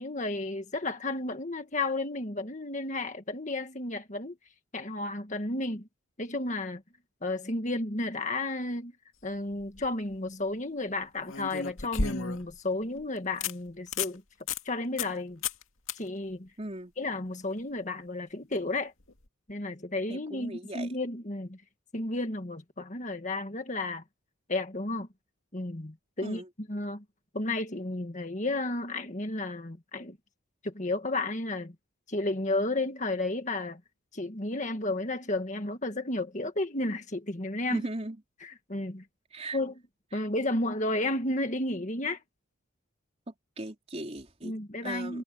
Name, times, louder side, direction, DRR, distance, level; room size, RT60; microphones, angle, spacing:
voice 1, 0.0-4.4 4.7-5.9 6.2-6.8 7.2-8.9 9.2-14.2 14.7-15.4 16.0-16.5 17.0-18.9 19.5-21.6 21.9-24.0 24.5-25.1 25.5-26.4 26.7-27.0 27.3-30.2 30.6-31.8 32.1-33.8 34.1-37.8 38.4-39.0 39.5-39.7 40.1-42.2 44.4-45.2, left 2 dB, 35° left, 1.7 m, -32 dB
sound 1, 9.5-9.9 11.3-12.6 13.0-13.1 13.4-13.5 13.9-14.1 14.5-14.6 15.0-15.2 15.4-15.6 15.9-16.0 19.1-19.2, left 5 dB, 70° left, 2.2 m, -32 dB
voice 2, 16.6-16.9 20.1-20.9 26.2-26.5 37.7-38.2 39.3-39.6 40.1-40.2 43.3-44.5 44.8-45.2, right 1 dB, 30° right, 3.7 m, -38 dB
head